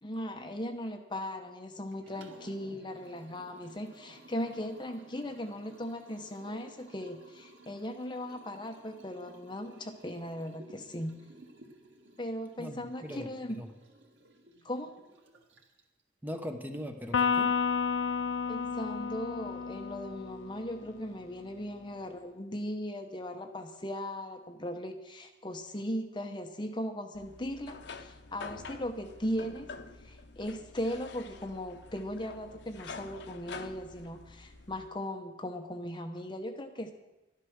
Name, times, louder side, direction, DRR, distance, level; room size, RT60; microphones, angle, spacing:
voice 1, 0.0-11.2 12.2-13.6 14.6-14.9 18.5-29.7 30.0-36.9, equal, 25° left, 5 dB, 0.9 m, -38 dB
Liquid, 1.9-16.0, right 1 dB, 85° right, 1.9 m, -55 dB
voice 2, 12.6-13.7 16.2-17.5, equal, 10° right, 4 dB, 1.1 m, -40 dB
Electric guitar, 17.1-20.7, left 6 dB, 90° left, 0.4 m, -31 dB
sound 1, 27.1-34.9, left 4 dB, 65° left, 0.7 m, -47 dB
12.0 x 11.5 x 6.5 m, 1.0 s
head